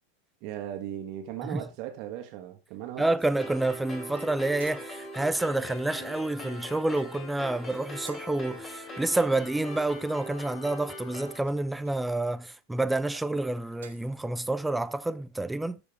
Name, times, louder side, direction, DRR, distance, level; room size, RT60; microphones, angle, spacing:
voice 1, 0.4-3.1, right 11 dB, 40° right, 1.7 m, -37 dB
voice 2, 3.0-15.8, right 2 dB, 5° right, 0.5 m, -29 dB
sound 1, 3.4-11.4, left 1 dB, 25° left, 2.8 m, -41 dB
sound 2, 4.1-5.2 6.9-7.4 8.0-8.7 9.6-10.5 11.4-12.0 12.9-13.3 13.7-14.2, right 7 dB, 65° right, 1.4 m, -52 dB
13.0 x 5.0 x 3.5 m
figure-of-eight pair, 90°, 0 cm